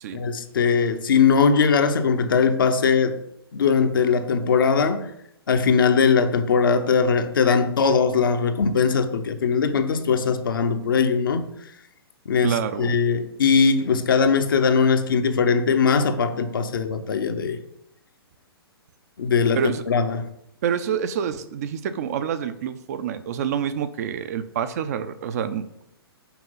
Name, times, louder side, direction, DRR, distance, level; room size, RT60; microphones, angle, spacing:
voice 1, 0.1-3.1 3.5-5.1 5.5-11.5 12.3-17.6 19.2-19.6 19.9-20.2, left 5 dB, 55° left, 0.8 m, -20 dB
voice 2, 12.4-13.0 19.5-19.8 20.6-25.8, right 8 dB, 40° right, 0.5 m, -27 dB
5.8 x 4.6 x 5.5 m
figure-of-eight pair, 120°, 13 cm